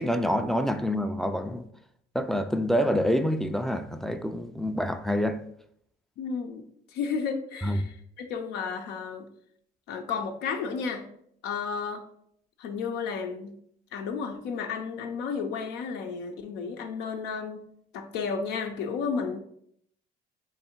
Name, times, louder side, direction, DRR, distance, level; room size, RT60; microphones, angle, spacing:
voice 1, 0.0-1.7 2.1-5.4 7.6-7.8, equal, ahead, 0.3 m, -27 dB
voice 2, 6.2-6.6 6.9-9.3 9.9-11.1 11.4-12.0 12.6-13.6 13.9-17.6 17.9-19.4, left 5 dB, 85° left, 0.6 m, -32 dB
3.7 x 3.2 x 4.3 m
cardioid pair, 110°, 17 cm